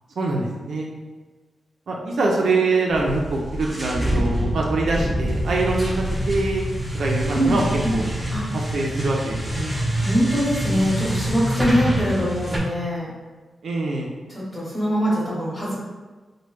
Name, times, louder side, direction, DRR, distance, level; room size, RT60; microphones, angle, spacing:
voice 1, 0.2-0.9 1.9-6.6 6.9-8.1 8.5-9.7 13.6-14.1, right 3 dB, 75° right, -2 dB, 0.4 m, -24 dB
sound 1, 2.9-12.6, equal, 15° right, 0.8 m, -26 dB
voice 2, 7.3-8.0 8.3-8.4 10.0-13.1 14.3-15.8, equal, 20° left, -6 dB, 1.2 m, -23 dB
3.0 x 2.2 x 3.2 m, 1.3 s
cardioid pair, 90°, 0 cm